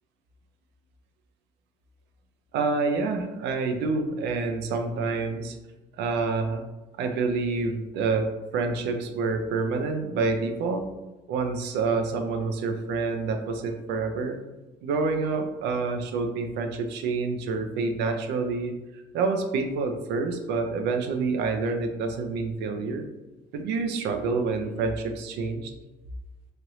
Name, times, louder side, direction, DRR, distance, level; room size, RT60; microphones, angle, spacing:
voice 1, 2.5-5.6 6.0-6.6 7.0-10.9 11.3-14.4 14.8-18.8 19.1-23.1 23.5-25.7, right 4 dB, 75° right, 6 dB, 0.5 m, -27 dB
3.1 x 2.5 x 3.0 m, 1.1 s
supercardioid pair, 75°, 18 cm